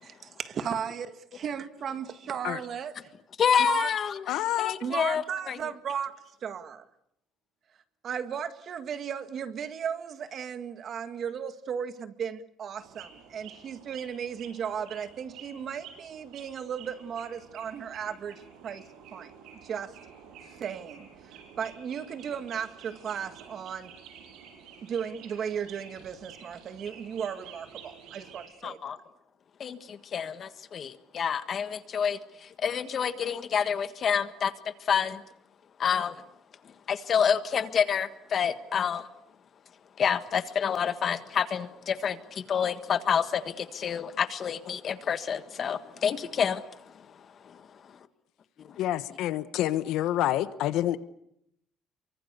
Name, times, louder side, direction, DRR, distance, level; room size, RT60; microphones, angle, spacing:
voice 1, 0.0-3.1 3.7-3.9 4.8-6.8 8.0-18.8 19.1-19.3 19.6-20.0 20.5-23.9 24.8-28.9, right 7 dB, 45° right, 10 dB, 1.8 m, -35 dB
voice 2, 3.4-5.6 28.6-29.0 29.6-34.5 34.8-35.2 35.8-36.2 36.9-39.1 40.0-47.1 47.4-47.6 48.7-48.8, left 7 dB, 40° left, 11 dB, 1.6 m, -28 dB
voice 3, 4.3-4.8 48.8-51.0, left 13 dB, 80° left, 14 dB, 1.3 m, -28 dB
sound 1, 12.8-28.5, right 7 dB, 80° right, 7.3 m, -50 dB
28.5 x 24.0 x 6.9 m, 0.76 s
cardioid pair, 135°, 0 cm